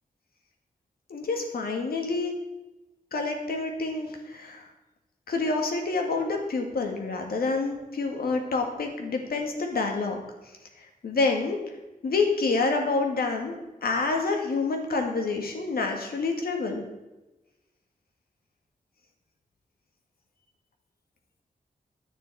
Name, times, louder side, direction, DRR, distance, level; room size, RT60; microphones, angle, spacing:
voice 1, 1.1-2.3 3.1-4.7 5.3-10.2 10.8-11.6 12.0-13.6 13.8-16.8, left 3 dB, 90° left, 3 dB, 1.8 m, -28 dB
11.0 x 9.3 x 4.7 m, 1.0 s
wide cardioid pair, 130°, 15 cm